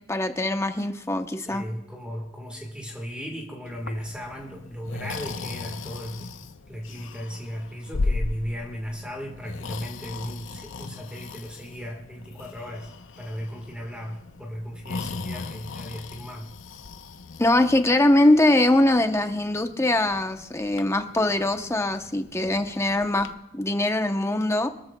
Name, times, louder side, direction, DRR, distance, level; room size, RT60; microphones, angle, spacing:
voice 1, 0.1-1.6 17.4-23.3 23.5-24.7, left 1 dB, 15° left, 7 dB, 0.8 m, -22 dB
voice 2, 1.5-16.5, equal, 5° right, 1 dB, 1.5 m, -36 dB
Breathing, 3.7-23.3, left 3 dB, 90° left, 0.6 m, -37 dB
26.5 x 13.5 x 2.3 m, 0.84 s
head